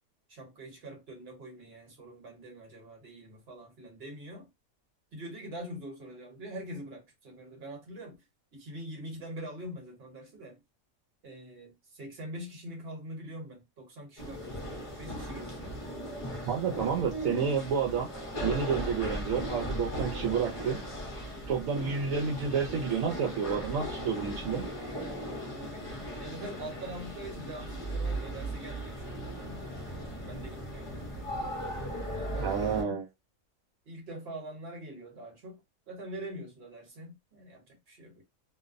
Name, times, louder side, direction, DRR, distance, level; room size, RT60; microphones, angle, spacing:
voice 1, 0.3-4.5 5.1-8.3 8.5-10.6 11.2-15.8 21.8-22.1 25.5-31.0 32.1-33.0 33.8-38.2, right 1 dB, 50° right, 1.1 m, -44 dB
sound 1, 14.2-32.8, equal, 35° left, 0.6 m, -37 dB
voice 2, 16.5-18.1 18.4-20.8 21.5-24.7 32.4-33.1, right 6 dB, 75° right, 0.9 m, -30 dB
2.5 x 2.1 x 2.4 m
omnidirectional pair, 1.5 m